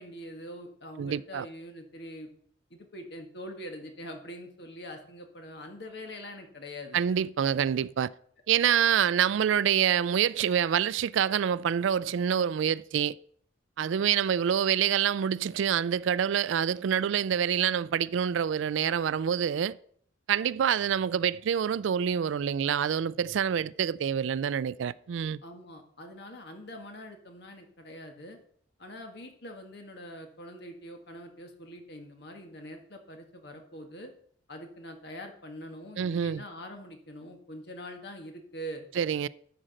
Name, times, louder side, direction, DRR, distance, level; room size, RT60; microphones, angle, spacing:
voice 1, 0.0-2.3 2.7-7.0 13.8-14.1 25.4-28.4 28.8-34.1 34.5-38.8, equal, 55° left, 1.8 m, -44 dB
voice 2, 1.0-1.5 6.9-8.1 8.5-13.2 13.8-19.8 20.3-25.4 36.0-36.4 39.0-39.3, right 8 dB, 70° right, 0.3 m, -26 dB
13.0 x 5.0 x 6.5 m
head